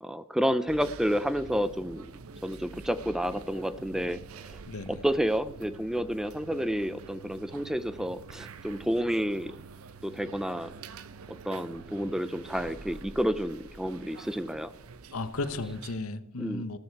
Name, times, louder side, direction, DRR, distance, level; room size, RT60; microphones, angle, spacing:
voice 1, 0.0-2.1 2.4-4.6 4.9-9.5 10.0-10.7 11.4-14.7 16.4-16.6, equal, ahead, 14 dB, 0.5 m, -30 dB
sound 1, 0.7-16.0, right 4 dB, 85° right, 0.8 m, -47 dB
voice 2, 4.7-5.0 15.1-16.8, left 2 dB, 85° left, 12 dB, 0.9 m, -34 dB
14.0 x 13.5 x 4.6 m, 0.80 s
head